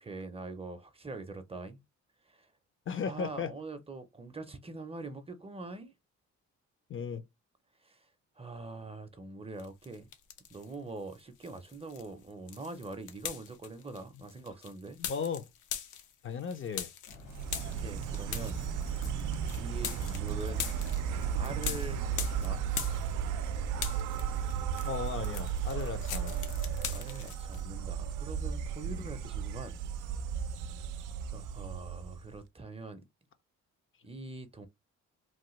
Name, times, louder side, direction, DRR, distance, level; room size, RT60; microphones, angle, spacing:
voice 1, 0.0-1.8 2.3-2.5 3.0-5.9 7.8-8.1 8.4-10.1 10.5-15.0 17.8-18.6 18.9-20.7 21.4-22.0 22.4-22.6 26.9-29.8 30.6-30.8 31.3-33.0 34.0-34.7, right 3 dB, 20° right, 0.5 m, -43 dB
voice 2, 2.9-3.5 6.9-7.2 15.0-15.5 16.2-16.9 24.8-26.4 28.9-29.1, left 6 dB, 45° left, 0.5 m, -36 dB
sound 1, 9.6-10.7 11.1-23.5 23.7-27.6, left 8 dB, 85° left, 0.7 m, -42 dB
sound 2, 17.1-22.6, left 2 dB, 65° left, 1.1 m, -50 dB
Insect, 17.3-32.4, right 7 dB, 85° right, 0.4 m, -35 dB
3.1 x 2.1 x 3.0 m
cardioid pair, 90°, 30 cm